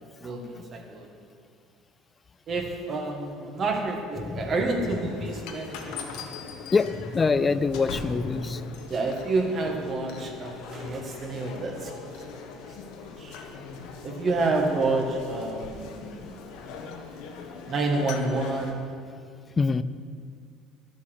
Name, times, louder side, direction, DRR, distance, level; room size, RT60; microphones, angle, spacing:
voice 1, 0.2-1.1 2.5-6.0 8.9-11.9 13.2-13.4 14.0-16.3 17.7-18.9, right 3 dB, 40° right, 2 dB, 1.7 m, -29 dB
voice 2, 4.2-4.5 6.7-8.7 19.6-19.8, left 4 dB, 25° left, 15 dB, 0.4 m, -24 dB
sound 1, 4.9-18.7, left 5 dB, 75° left, 1.2 m, -40 dB
11.0 x 7.2 x 6.3 m, 2.2 s
cardioid pair, 120°, 0 cm